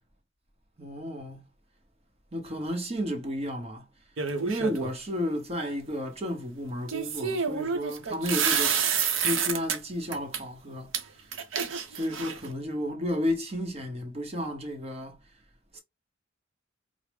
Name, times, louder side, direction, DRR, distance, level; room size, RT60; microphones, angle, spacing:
voice 1, 0.8-1.4 2.3-3.9 4.4-8.8 9.2-11.2 11.9-15.2 15.7-15.8, equal, 35° right, 0.9 m, -32 dB
sound 1, 4.2-4.9 6.9-9.8 10.1-10.4 10.9-11.0 11.3-12.5, right 6 dB, 80° right, 0.7 m, -28 dB
4.8 x 2.0 x 3.4 m
head